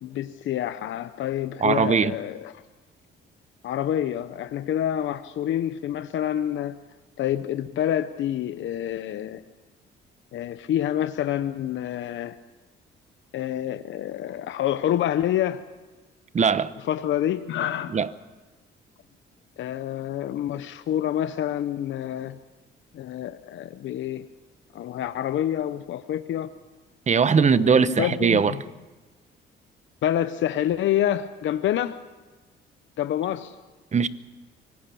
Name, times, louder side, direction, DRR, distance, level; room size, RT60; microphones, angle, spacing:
voice 1, 0.0-2.5 3.6-6.7 7.2-9.4 10.3-12.4 13.3-15.6 16.9-17.9 19.6-22.4 22.9-24.3 24.7-26.5 27.4-28.6 30.0-32.0 33.0-33.6, left 11 dB, 75° left, 0.8 m, -27 dB
voice 2, 1.6-2.2 16.3-16.7 17.9-18.1 27.1-28.5 33.9-34.1, right 6 dB, 35° right, 1.0 m, -20 dB
25.0 x 18.0 x 7.0 m
cardioid pair, 90°, 20 cm